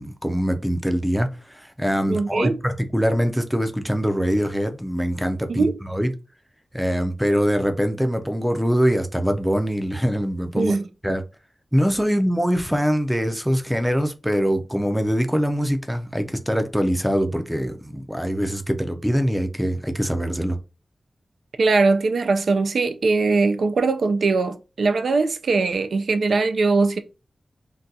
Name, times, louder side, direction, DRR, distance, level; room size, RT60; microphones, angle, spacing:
voice 1, 0.0-6.1 6.7-10.7 11.0-11.2 11.7-20.6, equal, ahead, 0.4 m, -23 dB
voice 2, 2.1-2.5 5.5-5.8 10.6-10.8 21.6-27.0, right 3 dB, 80° right, 0.3 m, -21 dB
3.8 x 2.2 x 2.6 m
wide cardioid pair, 120°, 0 cm